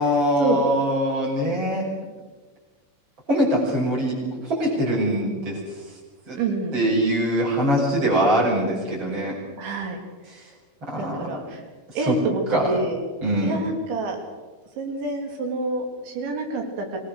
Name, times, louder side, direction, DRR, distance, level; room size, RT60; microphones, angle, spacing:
voice 1, 0.0-1.9 3.3-5.6 6.3-6.4 6.7-9.4 10.9-11.4 11.9-12.2 12.5-12.7 13.2-13.6, equal, 25° right, -5 dB, 6.1 m, -23 dB
voice 2, 6.4-6.8 9.6-10.0 11.0-11.6 12.0-13.0 13.4-14.2 14.8-17.0, right 3 dB, 65° right, 3 dB, 5.4 m, -27 dB
25.5 x 19.5 x 6.5 m, 1.3 s
omnidirectional pair, 5.7 m